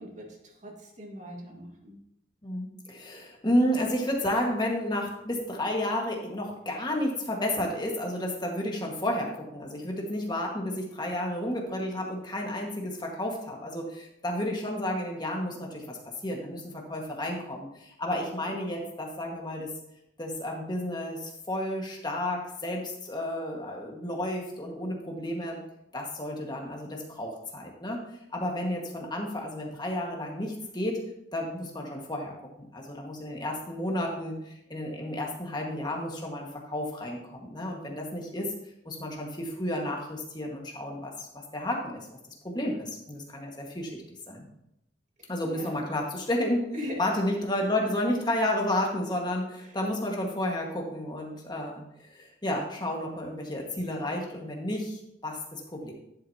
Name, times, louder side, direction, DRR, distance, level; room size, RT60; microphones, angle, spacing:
voice 1, 0.0-2.0 45.2-45.9 46.7-47.1 49.6-49.8, left 1 dB, 40° right, 0 dB, 1.9 m, -41 dB
voice 2, 2.4-19.7 20.2-25.6 25.9-28.0 28.3-31.0 31.3-38.5 38.8-41.3 41.5-42.1 42.4-44.5 45.3-46.7 47.0-51.8 52.1-55.9, left 1 dB, 25° left, 0 dB, 1.6 m, -31 dB
11.5 x 7.8 x 2.8 m, 0.81 s
head